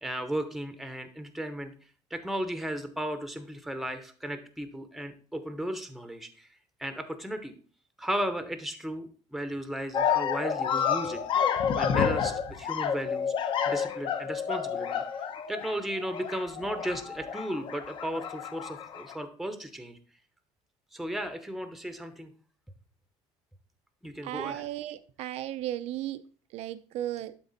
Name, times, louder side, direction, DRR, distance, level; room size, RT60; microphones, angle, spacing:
voice 1, 0.0-1.7 2.1-6.5 6.8-7.5 8.0-11.2 11.8-15.0 15.5-20.0 20.9-22.3 24.0-24.6, right 1 dB, ahead, 8 dB, 0.8 m, -35 dB
sound 1, 9.9-19.1, left 7 dB, 45° left, 1.0 m, -30 dB
voice 2, 24.2-26.2 26.5-27.3, right 13 dB, 60° right, 14 dB, 0.5 m, -35 dB
11.5 x 4.0 x 4.1 m, 0.41 s
cardioid pair, 145°, 12 cm